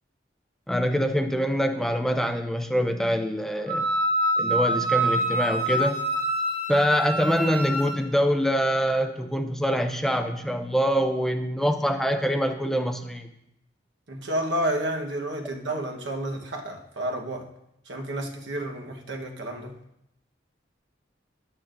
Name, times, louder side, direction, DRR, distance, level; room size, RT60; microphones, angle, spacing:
voice 1, 0.7-3.9 4.4-6.0 6.7-13.3, equal, ahead, 0.4 m, -25 dB
Wind instrument woodwind instrument, 3.7-8.0, right 1 dB, 25° right, 2.9 m, -26 dB
voice 2, 14.1-17.5 17.9-19.7, right 1 dB, 75° right, 1.1 m, -30 dB
10.5 x 8.6 x 2.5 m
head